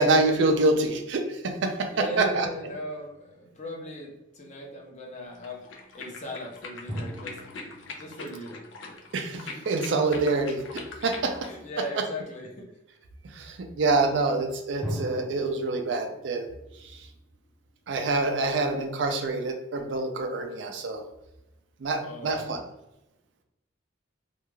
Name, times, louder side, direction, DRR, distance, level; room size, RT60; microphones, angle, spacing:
voice 1, 0.0-1.9 2.2-2.5 9.1-11.3 12.0-12.1 13.3-16.5 17.9-21.0 21.8-22.6, right 3 dB, 70° right, 5 dB, 0.4 m, -26 dB
voice 2, 1.7-5.6 5.9-7.4 8.0-8.6 11.4-12.7 22.0-22.6, left 1 dB, 40° left, -1 dB, 0.6 m, -39 dB
sound 1, 2.2-3.9 6.9-9.6 14.8-17.8, equal, ahead, 0.7 m, -41 dB
sound 2, 5.3-11.5, left 3 dB, 80° left, 0.5 m, -42 dB
2.4 x 2.3 x 3.0 m, 0.91 s
head